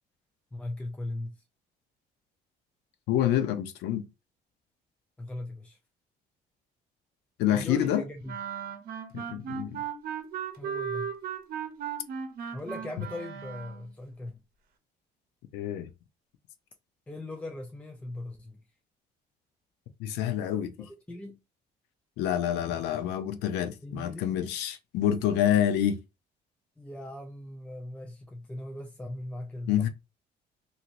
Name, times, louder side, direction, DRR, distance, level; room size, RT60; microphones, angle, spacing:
voice 1, 0.5-1.4 5.2-5.8 7.5-8.4 10.6-11.2 12.5-14.4 17.1-18.6 20.8-21.4 23.8-24.6 26.8-29.9, left 1 dB, 10° left, 0.4 m, -39 dB
voice 2, 3.1-4.1 7.4-8.0 9.1-9.8 15.5-15.9 20.0-20.9 22.2-26.0 29.7-29.9, left 10 dB, 90° left, 0.5 m, -27 dB
sound 1, 8.3-13.9, right 7 dB, 60° right, 0.8 m, -36 dB
2.9 x 2.8 x 2.5 m
cardioid pair, 110°, 17 cm